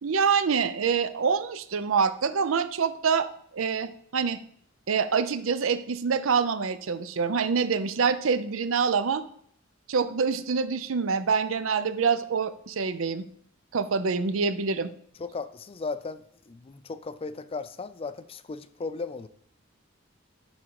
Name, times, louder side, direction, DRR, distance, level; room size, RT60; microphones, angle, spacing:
voice 1, 0.0-3.3 3.5-4.4 4.9-9.2 9.9-13.2 13.7-14.9, right 5 dB, 80° right, 12 dB, 0.6 m, -26 dB
voice 2, 15.2-19.3, left 4 dB, 30° left, 13 dB, 0.4 m, -36 dB
10.5 x 3.7 x 4.7 m, 0.63 s
head